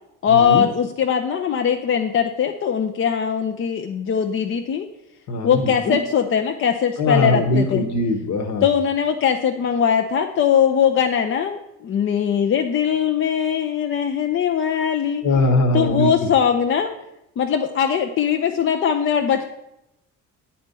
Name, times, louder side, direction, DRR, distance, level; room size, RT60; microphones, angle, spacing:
voice 1, 0.2-4.9 5.4-7.8 8.6-15.2 15.7-16.9 17.4-19.5, left 8 dB, 40° left, 5 dB, 0.5 m, -20 dB
voice 2, 5.3-5.9 7.0-8.6 15.2-16.1, left 2 dB, 55° left, 6 dB, 1.2 m, -21 dB
8.6 x 4.3 x 5.3 m, 0.88 s
cardioid pair, 95°, 33 cm